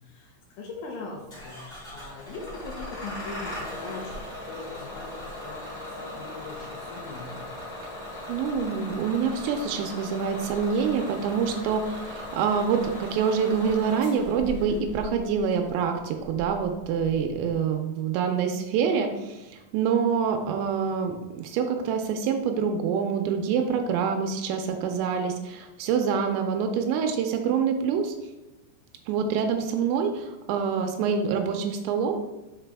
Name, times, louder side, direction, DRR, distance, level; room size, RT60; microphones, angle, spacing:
voice 1, 0.0-1.6 1.9-7.4, left 3 dB, 85° left, -1 dB, 2.2 m, -41 dB
Bus / Engine starting, 1.3-17.5, left 1 dB, 35° left, 1.3 m, -39 dB
voice 2, 8.3-28.1 29.1-32.3, right 6 dB, 85° right, 4 dB, 2.8 m, -26 dB
6.0 x 4.8 x 3.4 m, 1.1 s
omnidirectional pair, 5.2 m